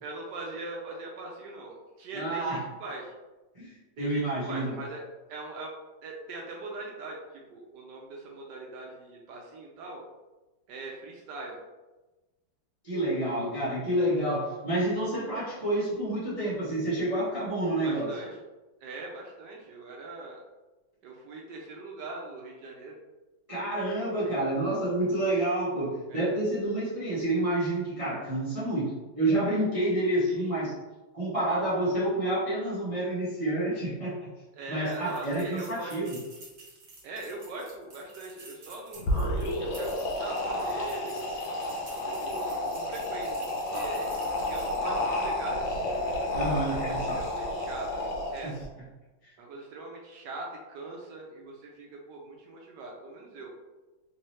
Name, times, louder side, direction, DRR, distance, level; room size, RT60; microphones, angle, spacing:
voice 1, 0.0-3.1 4.0-5.0 5.3-5.7 6.0-10.0 10.7-11.6 17.8-18.4 18.8-20.4 21.0-23.0 26.1-26.3 30.3-30.6 34.5-36.0 37.0-39.0 39.4-41.2 42.0-44.1 44.5-45.6 46.5-48.0 48.3-48.5 49.4-53.5, right 2 dB, 75° right, -1 dB, 1.1 m, -41 dB
voice 2, 2.1-2.6 3.5-4.8 12.8-18.1 23.5-30.7 31.1-34.3 34.7-36.2 46.3-47.2 48.4-48.5 49.2-49.3, right 1 dB, 25° right, -10 dB, 0.7 m, -29 dB
sound 1, 34.9-44.9, right 3 dB, 55° right, 1.4 m, -51 dB
sound 2, 39.0-48.6, left 1 dB, 75° left, 1.5 m, -31 dB
3.6 x 2.8 x 3.1 m, 1.1 s
omnidirectional pair, 2.1 m